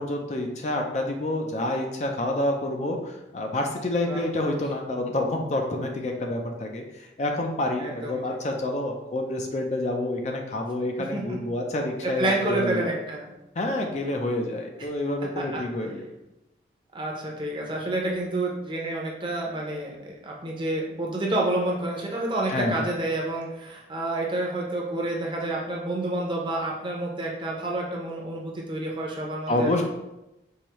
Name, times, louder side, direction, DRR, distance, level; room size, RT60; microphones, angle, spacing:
voice 1, 0.0-12.9 13.6-16.0 22.5-22.9 29.5-29.8, left 1 dB, 40° left, 2 dB, 0.4 m, -28 dB
voice 2, 4.1-4.6 7.8-8.4 11.1-11.4 12.0-13.3 14.8-14.9 15.4-15.6 16.9-29.8, right 2 dB, 25° right, -2 dB, 0.7 m, -29 dB
4.7 x 2.6 x 3.0 m, 0.93 s
head